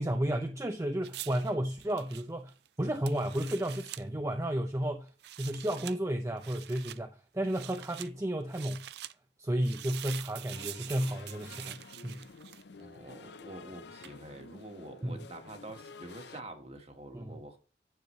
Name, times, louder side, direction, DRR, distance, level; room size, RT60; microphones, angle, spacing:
voice 1, 0.0-2.5 2.8-5.1 5.4-8.8 9.4-12.3 15.0-15.2 17.1-17.3, right 1 dB, 15° right, 0.5 m, -32 dB
sound 1, 1.0-4.0 5.1-6.0 6.4-7.0 7.5-8.1 8.5-9.1 9.6-12.8 14.0-14.2, right 13 dB, 70° right, 0.4 m, -45 dB
sound 2, 10.5-16.4, left 4 dB, 75° left, 0.6 m, -51 dB
voice 2, 12.8-17.6, right 2 dB, 35° right, 1.5 m, -47 dB
9.4 x 6.7 x 3.1 m
head